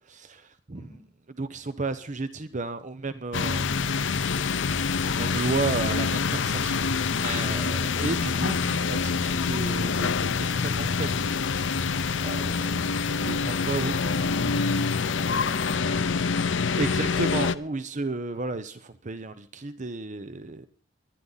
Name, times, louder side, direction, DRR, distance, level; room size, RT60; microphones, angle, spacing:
voice 1, 0.1-0.9 1.4-3.9 5.0-6.9 7.2-11.1 11.4-11.7 12.2-12.8 13.1-13.9 16.8-20.7, right 3 dB, 40° right, 0.9 m, -33 dB
voice 2, 0.7-1.1 17.7-17.8, equal, 20° left, 4.3 m, -48 dB
sound 1, 3.3-17.5, left 5 dB, 75° left, 0.7 m, -26 dB
23.5 x 11.0 x 4.1 m
head